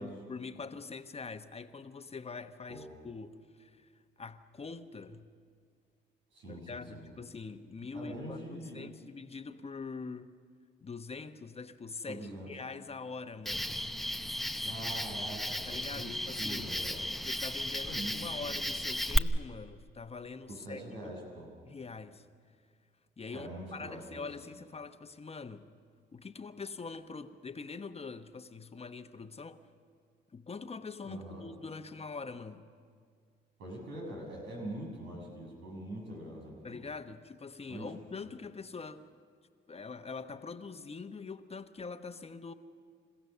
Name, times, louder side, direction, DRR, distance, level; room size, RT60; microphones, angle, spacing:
voice 1, 0.0-3.9 4.2-5.3 6.5-10.3 10.8-13.7 15.7-16.8 17.2-21.1 21.7-22.2 23.2-25.7 26.1-29.6 30.3-32.7 36.6-39.0 39.7-42.5, left 4 dB, 35° left, 9 dB, 1.1 m, -44 dB
voice 2, 6.3-7.1 7.9-8.9 12.1-12.5 14.6-16.1 16.4-17.0 17.9-18.6 20.5-21.5 23.3-24.2 31.1-31.5 33.6-36.8 37.7-37.9, right 1 dB, 90° right, -2 dB, 6.9 m, -43 dB
Cricket, 13.5-19.2, left 1 dB, ahead, 0.8 m, -34 dB
29.5 x 15.5 x 6.8 m, 2.1 s
cardioid pair, 75°, 19 cm